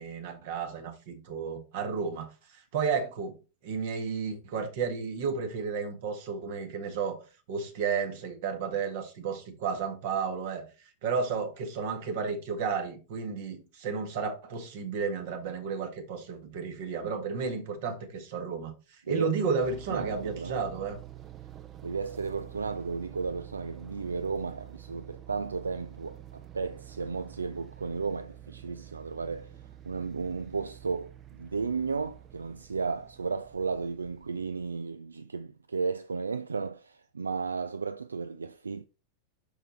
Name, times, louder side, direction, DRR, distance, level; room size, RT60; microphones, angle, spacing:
voice 1, 0.0-3.4 3.6-7.2 7.5-21.0, right 5 dB, 50° right, 1.6 m, -32 dB
sound 1, 19.6-34.7, right 12 dB, 30° right, 0.6 m, -48 dB
voice 2, 19.9-20.6 21.8-38.9, right 4 dB, 75° right, 0.3 m, -34 dB
6.2 x 5.5 x 4.4 m
figure-of-eight pair, 90°, 0 cm